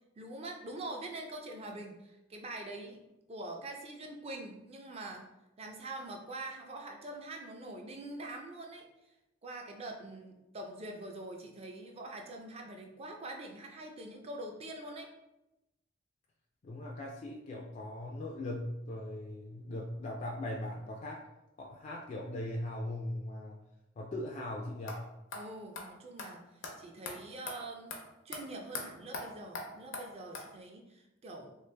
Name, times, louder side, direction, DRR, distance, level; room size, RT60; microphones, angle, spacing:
voice 1, 0.2-3.0 3.3-5.3 5.6-8.9 9.4-15.1 25.3-27.9 28.2-31.6, right 2 dB, 35° right, 3 dB, 0.5 m, -44 dB
voice 2, 16.6-21.2 21.6-23.6 24.0-25.0, left 1 dB, 40° left, -1 dB, 0.3 m, -39 dB
sound 1, 24.9-25.0 25.3-25.4 25.8-25.9 26.2-26.3 26.6-26.7 27.1-27.2 27.5-27.6 27.9-28.0 28.3-28.4 28.7-28.8 29.1-29.2 29.5-29.7 29.9-30.0 30.3-30.4, left 3 dB, 85° left, 0.6 m, -39 dB
3.1 x 2.4 x 3.3 m, 0.94 s
head